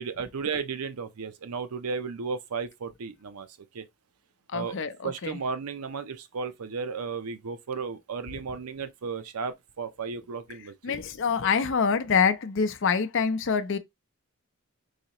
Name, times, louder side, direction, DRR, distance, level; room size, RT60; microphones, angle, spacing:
voice 1, 0.0-3.5 3.7-3.8 4.5-4.8 5.0-11.0, right 5 dB, 90° right, 0.6 m, -34 dB
voice 2, 4.5-5.4 10.8-13.8, left 6 dB, 55° left, 0.5 m, -26 dB
4.0 x 2.8 x 2.9 m
head